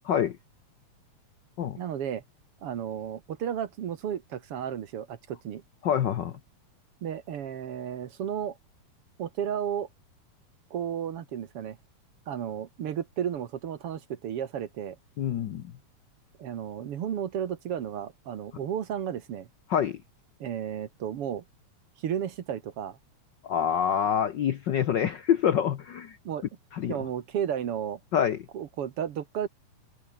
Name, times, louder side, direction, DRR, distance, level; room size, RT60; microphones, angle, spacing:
voice 1, 0.1-0.4 1.6-1.8 5.8-6.4 15.2-15.7 19.7-20.0 23.4-26.2 26.7-27.0 28.1-28.4, left 9 dB, 85° left, 0.9 m, -26 dB
voice 2, 1.8-2.2 2.6-5.6 7.0-8.6 9.2-9.9 10.7-11.8 12.3-15.0 16.4-19.5 20.4-21.4 22.0-23.0 26.3-26.4 26.9-28.0 28.5-29.5, right 9 dB, 55° right, 2.0 m, -33 dB
omnidirectional pair, 3.4 m